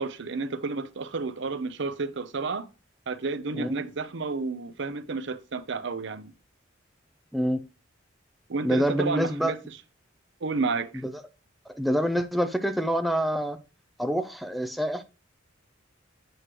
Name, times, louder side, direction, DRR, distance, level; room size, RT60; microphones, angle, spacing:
voice 1, 0.0-2.7 3.1-6.3 8.5-9.8 10.4-11.0, right 4 dB, 65° right, 0.7 m, -31 dB
voice 2, 8.6-9.5 11.0-11.1 11.7-13.6 14.0-15.0, equal, ahead, 0.4 m, -26 dB
7.9 x 3.2 x 5.9 m
head